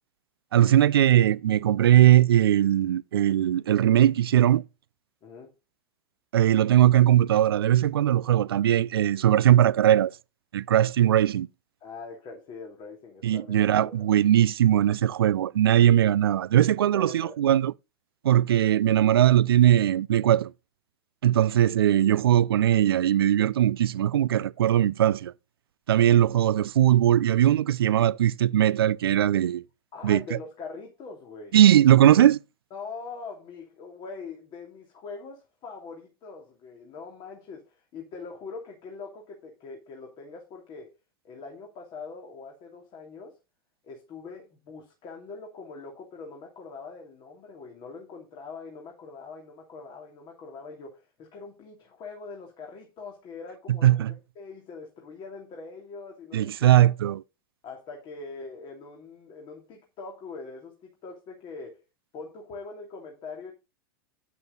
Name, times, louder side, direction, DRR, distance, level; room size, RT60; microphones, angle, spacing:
voice 1, 0.5-4.6 6.3-10.1 10.5-11.5 13.2-17.7 18.2-20.5 21.2-25.3 25.9-29.6 30.0-30.2 31.5-32.4 53.8-54.1 56.3-57.2, right 11 dB, 90° right, 0.4 m, -20 dB
voice 2, 5.2-5.5 11.8-14.0 16.9-17.4 29.9-31.6 32.7-40.9 41.2-43.3 43.8-56.9 57.6-61.8 62.1-63.5, left 4 dB, 40° left, 2.9 m, -42 dB
9.2 x 8.3 x 4.0 m
hypercardioid pair, 110°, 12 cm